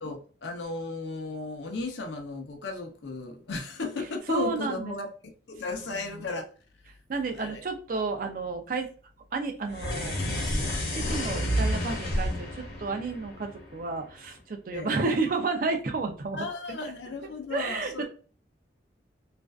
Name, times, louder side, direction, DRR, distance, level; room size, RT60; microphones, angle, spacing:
voice 1, 0.0-5.1 5.5-6.4 7.4-7.6 14.7-15.0 16.3-18.0, left 3 dB, 75° left, 0.6 m, -35 dB
voice 2, 4.3-4.9 5.7-6.3 7.1-8.9 9.3-10.2 10.9-16.5 17.5-18.0, right 3 dB, 45° right, 0.4 m, -31 dB
sound 1, 9.7-14.1, equal, 55° left, 1.0 m, -30 dB
2.4 x 2.2 x 2.3 m
head